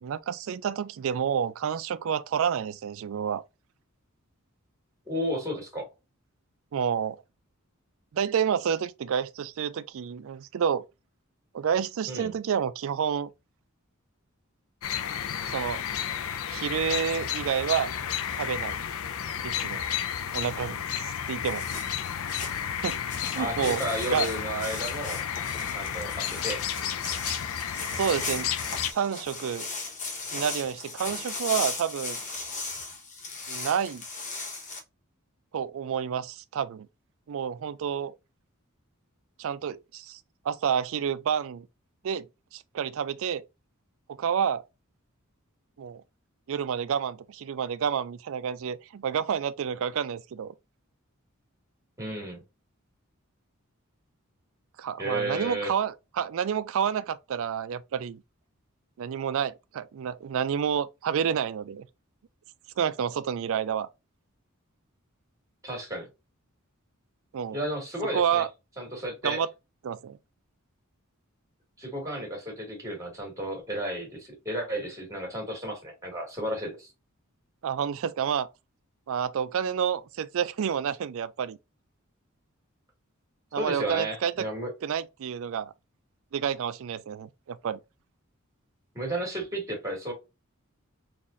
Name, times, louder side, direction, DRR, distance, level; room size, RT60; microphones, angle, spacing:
voice 1, 0.0-3.4 6.7-7.2 8.1-10.9 11.5-13.3 15.5-15.8 16.5-17.9 18.4-18.8 19.4-19.8 20.3-21.6 22.8-23.8 24.1-24.3 27.8-28.5 28.9-29.7 30.3-32.2 33.5-34.0 35.5-36.9 37.3-38.1 39.4-40.2 40.4-41.7 42.0-43.4 44.1-44.6 45.8-46.0 46.5-50.5 54.8-58.2 59.0-61.9 62.8-63.9 67.3-67.6 68.1-68.5 69.2-69.5 69.8-70.2 77.6-78.5 79.1-81.6 83.5-84.5 84.8-85.7 86.3-87.8, right 7 dB, 65° right, 0.4 m, -29 dB
voice 2, 5.1-5.9 12.1-12.3 23.4-25.2 25.7-26.6 52.0-52.4 55.0-55.7 65.6-66.1 67.5-68.5 68.8-69.4 71.8-76.9 83.6-84.7 88.9-90.1, right 1 dB, 15° right, 2.0 m, -33 dB
sound 1, 14.8-28.9, left 9 dB, 70° left, 0.4 m, -32 dB
sound 2, 21.4-34.8, left 3 dB, 35° left, 1.1 m, -37 dB
4.0 x 2.9 x 2.5 m
head